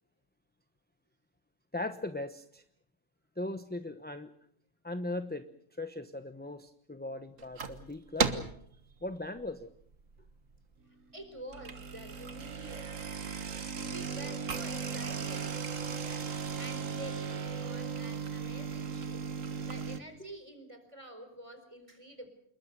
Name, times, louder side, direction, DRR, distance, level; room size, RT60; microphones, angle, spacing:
voice 1, 1.7-2.6 3.4-4.3 4.8-5.5 5.8-8.5 9.0-9.7, left 2 dB, 10° left, 9 dB, 0.9 m, -38 dB
sound 1, 7.4-7.8 8.2-8.6 9.1-9.4 9.9-10.0 10.3-10.4 11.4-20.0, right 5 dB, 85° right, 1.9 m, -36 dB
voice 2, 10.8-12.9 13.8-16.3 16.6-19.2 19.6-22.3, right 1 dB, 25° right, 8 dB, 4.4 m, -48 dB
27.5 x 22.0 x 6.8 m, 0.67 s
omnidirectional pair, 1.3 m